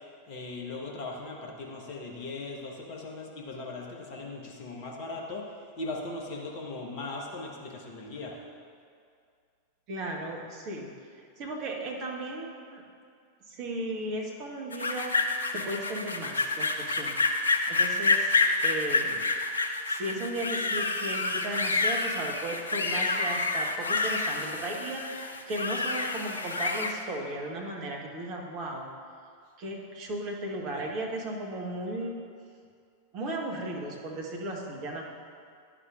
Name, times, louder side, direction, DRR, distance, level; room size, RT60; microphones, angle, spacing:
voice 1, 0.3-8.4 30.7-30.8, left 2 dB, 45° left, -1 dB, 1.0 m, -39 dB
voice 2, 9.9-10.9 11.4-12.8 13.5-15.2 15.5-17.2 17.7-19.2 19.9-28.9 29.6-32.2 33.1-35.0, right 1 dB, 40° right, 0 dB, 1.1 m, -35 dB
sound 1, 14.7-27.0, left 3 dB, 75° left, 0.4 m, -28 dB
10.5 x 6.1 x 2.4 m, 2.3 s
figure-of-eight pair, 90°, 0 cm